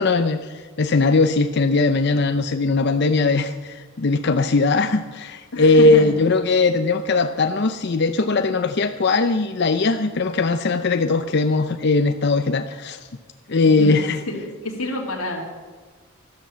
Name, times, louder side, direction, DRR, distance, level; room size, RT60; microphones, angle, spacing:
voice 1, 0.0-13.0 13.5-14.2, left 3 dB, 55° left, 8 dB, 0.6 m, -19 dB
voice 2, 5.5-6.2 13.8-13.9 14.3-15.4, left 1 dB, 90° left, -1 dB, 2.2 m, -28 dB
13.0 x 12.5 x 7.3 m, 1.4 s
head